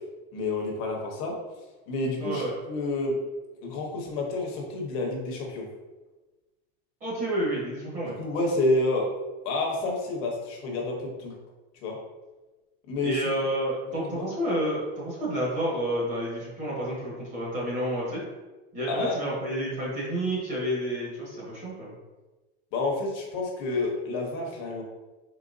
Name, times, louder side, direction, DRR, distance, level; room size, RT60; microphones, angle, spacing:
voice 1, 0.3-1.3 1.9-3.2 3.6-5.7 8.2-9.1 9.4-11.3 11.8-12.0 12.9-13.2 13.9-14.3 18.9-19.1 22.7-24.8, left 2 dB, 35° left, 0 dB, 0.9 m, -29 dB
voice 2, 2.2-2.5 7.0-8.1 13.0-18.2 18.7-21.9, right 1 dB, 20° right, -6 dB, 1.3 m, -30 dB
4.2 x 3.9 x 2.6 m, 1.2 s
supercardioid pair, 175°, 35 cm